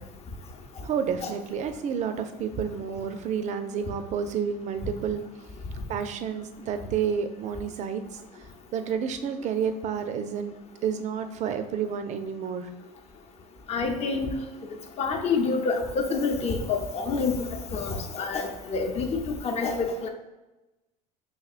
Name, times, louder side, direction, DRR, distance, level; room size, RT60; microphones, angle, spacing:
voice 1, 0.8-5.2 5.9-8.0 8.7-10.5 10.8-12.7, right 7 dB, 40° right, 8 dB, 0.4 m, -30 dB
voice 2, 13.7-14.3 15.0-17.4 17.7-20.1, left 4 dB, 35° left, 3 dB, 0.6 m, -27 dB
5.6 x 2.8 x 2.4 m, 1.0 s
supercardioid pair, 105°, 19 cm